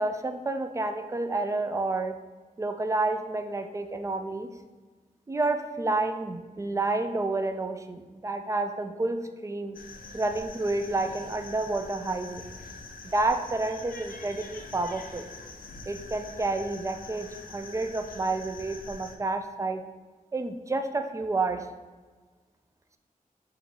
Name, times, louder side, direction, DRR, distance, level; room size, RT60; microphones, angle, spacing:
voice 1, 0.0-2.2 2.6-4.5 5.3-9.8 10.1-12.4 13.1-15.3 15.9-19.8 20.3-21.7, right 2 dB, 20° right, 7 dB, 0.3 m, -29 dB
sound 1, 9.7-19.2, left 3 dB, 75° left, 0.4 m, -44 dB
4.4 x 2.5 x 4.1 m, 1.3 s
wide cardioid pair, 85°, 15 cm